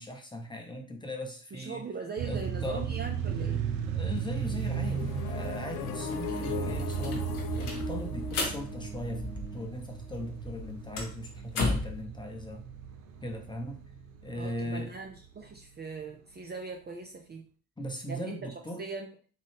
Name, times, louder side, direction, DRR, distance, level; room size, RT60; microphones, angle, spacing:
voice 1, 0.0-1.9 2.2-2.9 3.9-12.7 13.2-13.8 14.2-14.9 17.8-18.8, left 1 dB, 10° left, 3 dB, 0.8 m, -39 dB
voice 2, 1.5-3.6 14.3-17.5 18.1-18.4 18.8-19.1, right 4 dB, 25° right, 2 dB, 0.6 m, -40 dB
sound 1, 2.2-15.3, right 7 dB, 70° right, 0.6 m, -36 dB
sound 2, 4.6-10.4, left 4 dB, 55° left, 0.6 m, -38 dB
sound 3, 5.5-5.6 5.9-9.8 10.1-12.0, left 3 dB, 75° left, 0.9 m, -35 dB
3.7 x 2.5 x 3.5 m, 0.40 s
figure-of-eight pair, 40°, 43 cm